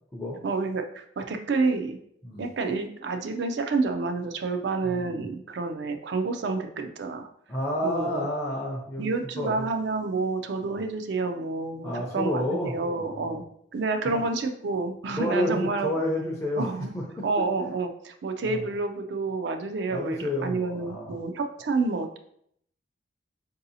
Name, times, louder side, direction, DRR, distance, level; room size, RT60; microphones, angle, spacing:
voice 1, 0.4-2.0 2.4-7.3 7.8-8.3 9.0-13.4 13.7-16.0 16.6-16.9 17.2-22.2, right 3 dB, 70° right, 6 dB, 0.4 m, -29 dB
voice 2, 4.8-5.2 7.5-9.1 9.4-9.7 10.6-10.8 11.8-13.4 14.0-14.2 15.2-17.0 18.5-18.6 19.9-21.2, left 1 dB, 15° left, -3 dB, 0.4 m, -30 dB
4.7 x 2.7 x 2.7 m, 0.70 s
head